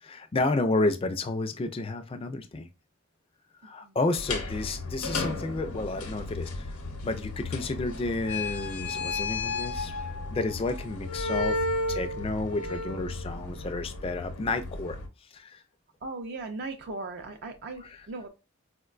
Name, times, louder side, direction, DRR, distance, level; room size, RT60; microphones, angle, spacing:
voice 1, 0.0-2.7 3.6-6.8 7.0-10.0 10.3-11.6 11.9-15.0 15.3-15.6 17.8-18.1, left 2 dB, 25° left, 0.3 m, -31 dB
sound 1, 4.2-15.1, left 2 dB, 85° left, 0.8 m, -33 dB
voice 2, 16.0-18.3, right 3 dB, 45° right, 0.4 m, -38 dB
4.5 x 2.1 x 2.3 m
head